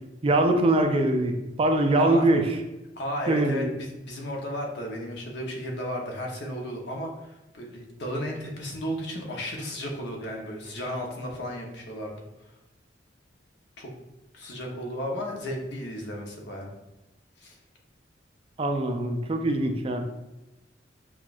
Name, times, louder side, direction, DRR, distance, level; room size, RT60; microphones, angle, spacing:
voice 1, 0.2-2.4 3.3-3.7 18.6-20.0, right 1 dB, 30° right, 4 dB, 0.3 m, -23 dB
voice 2, 2.0-2.3 3.0-12.1 13.8-13.9 14.3-16.7 17.4-17.6, equal, 65° left, 0 dB, 0.8 m, -34 dB
5.8 x 2.3 x 2.4 m, 0.99 s
head